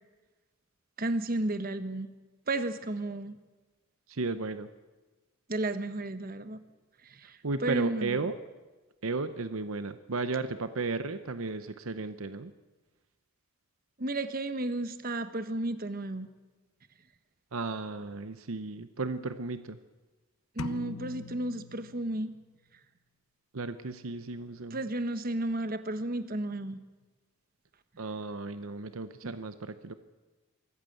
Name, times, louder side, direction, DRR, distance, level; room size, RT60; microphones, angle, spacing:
voice 1, 1.0-2.1 2.5-3.4 5.5-6.6 7.0-8.2 14.0-16.3 20.6-22.3 24.7-26.8 29.2-29.3, right 2 dB, 40° right, 11 dB, 1.1 m, -33 dB
voice 2, 4.1-4.7 7.4-8.3 9.0-12.5 17.5-19.8 23.5-24.8 28.0-29.9, right 3 dB, 70° right, 11 dB, 0.8 m, -34 dB
sound 1, 20.6-22.5, left 3 dB, 75° left, 0.7 m, -42 dB
24.0 x 14.0 x 7.9 m, 1.2 s
head